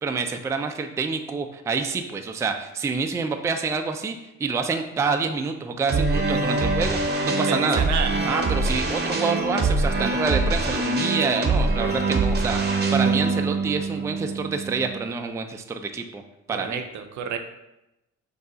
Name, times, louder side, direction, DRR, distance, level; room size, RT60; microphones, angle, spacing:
voice 1, 0.0-7.0 7.2-7.8 8.3-16.2 16.5-16.8, right 4 dB, 10° right, 5 dB, 0.3 m, -27 dB
sound 1, 5.9-15.0, right 3 dB, 35° right, 0.7 m, -24 dB
voice 2, 7.3-8.4 16.5-17.4, right 7 dB, 70° right, 6 dB, 0.6 m, -30 dB
5.3 x 2.3 x 3.8 m, 0.93 s
cardioid pair, 90°, 30 cm